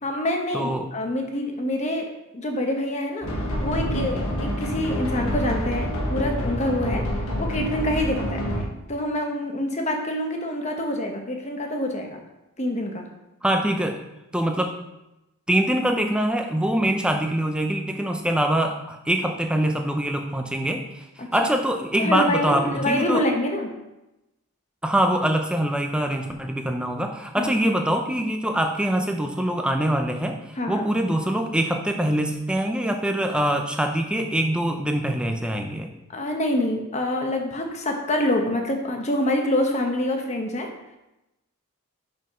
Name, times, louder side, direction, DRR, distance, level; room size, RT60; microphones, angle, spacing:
voice 1, 0.0-7.1 7.4-8.5 8.9-12.2 12.6-13.1 21.2-21.5 22.0-23.7 27.4-27.5 30.6-30.8 36.1-40.7, left 1 dB, 30° left, 3 dB, 1.0 m, -26 dB
voice 2, 0.5-0.9 13.4-14.0 14.3-14.8 15.5-23.2 24.8-35.9, right 1 dB, 5° right, 4 dB, 0.6 m, -24 dB
sound 1, 3.2-8.6, equal, 70° left, 1.1 m, -27 dB
5.8 x 5.3 x 5.5 m, 0.95 s
head